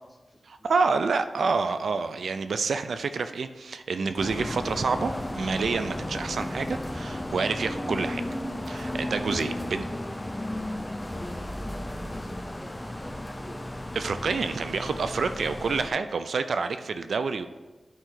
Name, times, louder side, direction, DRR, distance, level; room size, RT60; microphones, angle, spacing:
voice 1, 0.0-1.5 9.5-13.7 14.6-14.7, equal, ahead, 0 dB, 1.2 m, -48 dB
voice 2, 0.6-8.2 8.7-9.8 14.0-17.5, right 4 dB, 80° right, 10 dB, 0.4 m, -28 dB
sound 1, 4.2-15.9, left 1 dB, 15° left, 0.6 m, -34 dB
9.1 x 4.4 x 3.8 m, 1.2 s
cardioid pair, 55°, 0 cm